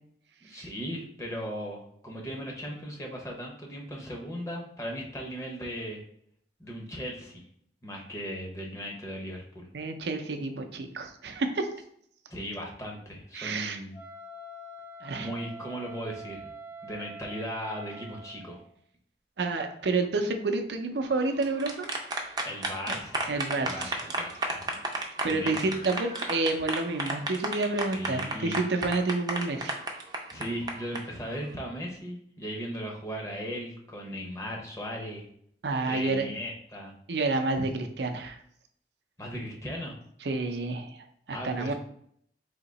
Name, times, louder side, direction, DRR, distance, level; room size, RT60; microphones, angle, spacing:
voice 1, 0.4-6.0 6.6-7.4 7.8-9.7 12.3-14.0 15.1-16.5 16.8-18.6 22.4-23.3 23.6-24.7 25.3-25.7 27.9-28.6 30.3-35.3 35.9-36.9 39.2-40.0 41.3-41.7, equal, 15° left, -1 dB, 0.8 m, -37 dB
voice 2, 9.7-11.7 13.3-13.8 15.0-15.3 19.4-21.9 22.2-22.3 22.9-23.0 23.3-24.1 25.2-29.8 35.6-36.3 37.1-38.4 40.2-41.7, right 3 dB, 75° right, 6 dB, 0.5 m, -29 dB
Wind instrument woodwind instrument, 13.9-18.6, right 2 dB, 40° left, 1.4 m, -45 dB
sound 1, 21.2-31.0, right 2 dB, 25° right, 0.5 m, -32 dB
3.6 x 2.8 x 4.0 m, 0.67 s
head